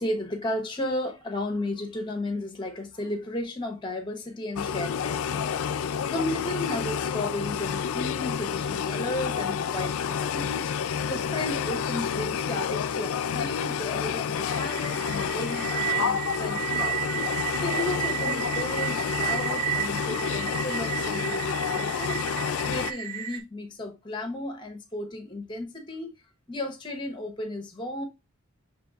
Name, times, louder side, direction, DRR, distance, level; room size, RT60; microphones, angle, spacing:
voice 1, 0.0-5.5 6.1-17.0 17.6-22.2 22.7-26.1 26.5-28.0, left 1 dB, 20° left, 0.8 m, -34 dB
sound 1, 4.6-22.9, left 7 dB, 70° left, 0.3 m, -29 dB
sound 2, 14.5-23.4, right 11 dB, 35° right, 0.8 m, -32 dB
6.7 x 3.2 x 2.4 m
head